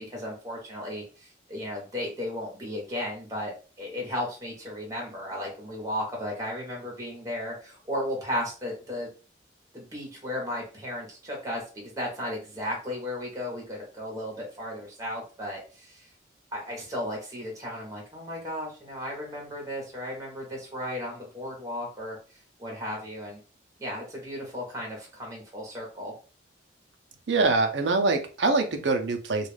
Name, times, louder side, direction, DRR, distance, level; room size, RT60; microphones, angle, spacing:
voice 1, 0.1-9.1 9.7-16.1 16.5-22.2 22.6-23.4 23.8-26.1, left 1 dB, 15° right, -1 dB, 0.8 m, -35 dB
voice 2, 27.3-29.5, right 3 dB, 65° right, 6 dB, 0.5 m, -24 dB
2.3 x 2.3 x 3.2 m, 0.36 s
head